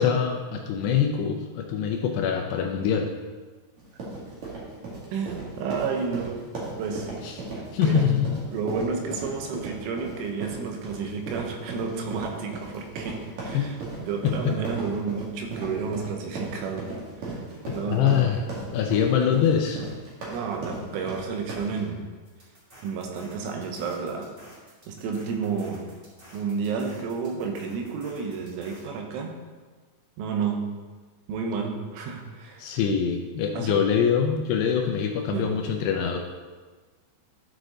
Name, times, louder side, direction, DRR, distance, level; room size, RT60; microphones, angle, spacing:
voice 1, 0.0-3.1 7.2-7.3 7.7-8.3 13.5-13.7 17.7-18.4 18.7-19.9 32.6-36.2, left 7 dB, 80° left, 3 dB, 2.5 m, -24 dB
sound 1, 3.8-21.8, right 2 dB, 45° right, 2.9 m, -37 dB
voice 2, 5.1-6.4 6.8-7.1 7.8-8.1 8.5-16.9 17.2-18.2 20.3-22.0 22.8-24.3 24.9-25.9 26.3-29.4 30.2-30.6 31.3-32.7 33.5-33.8 35.3-35.5, right 5 dB, 90° right, 3 dB, 3.6 m, -31 dB
sound 2, 22.2-28.8, right 1 dB, 25° right, 1.5 m, -51 dB
12.5 x 6.6 x 3.9 m, 1.4 s
omnidirectional pair, 5.4 m